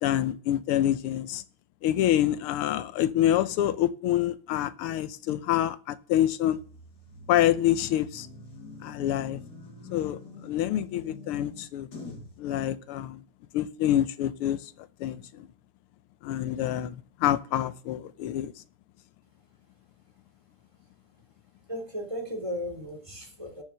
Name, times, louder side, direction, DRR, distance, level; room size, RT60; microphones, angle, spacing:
voice 1, 0.0-1.4 1.8-6.6 7.3-8.3 8.8-9.4 9.9-11.9 12.4-13.2 13.5-14.7 15.0-15.5 16.2-18.5, left 12 dB, 90° left, 1.7 m, -27 dB
sound 1, 6.5-12.4, left 3 dB, 50° left, 2.6 m, -45 dB
voice 2, 21.7-23.6, equal, 15° right, 3.4 m, -35 dB
12.5 x 7.3 x 7.6 m
omnidirectional pair, 2.4 m